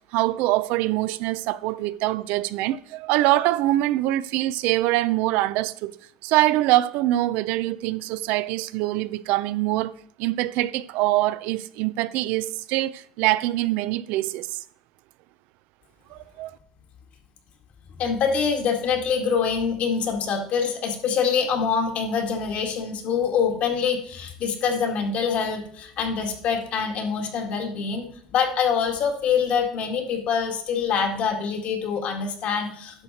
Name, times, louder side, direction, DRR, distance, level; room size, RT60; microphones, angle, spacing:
voice 1, 0.1-5.9 6.2-9.9 10.2-14.6 16.1-16.5, right 16 dB, 70° right, 0.4 m, -24 dB
voice 2, 18.0-28.1 28.3-33.0, left 6 dB, 55° left, 2.0 m, -25 dB
10.5 x 6.3 x 4.2 m
supercardioid pair, 95°, 3 cm